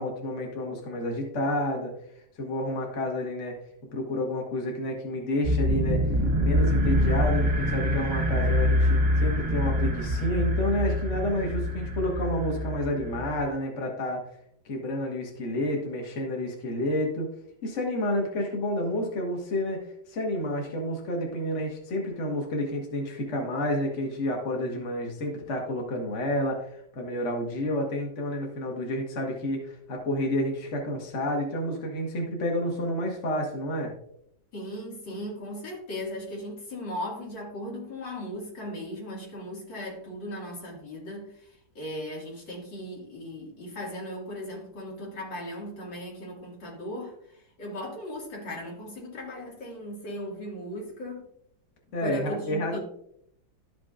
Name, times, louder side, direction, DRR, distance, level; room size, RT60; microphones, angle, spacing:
voice 1, 0.0-1.9 2.4-3.6 3.9-14.2 14.6-17.3 17.6-19.8 20.1-33.9 51.9-52.8, left 1 dB, 40° left, 0 dB, 1.6 m, -30 dB
sound 1, 5.4-13.5, equal, 25° right, 1.0 m, -25 dB
voice 2, 34.5-51.3 52.0-52.8, left 1 dB, 80° left, -3 dB, 2.9 m, -37 dB
12.5 x 6.0 x 2.5 m, 0.71 s
omnidirectional pair, 2.0 m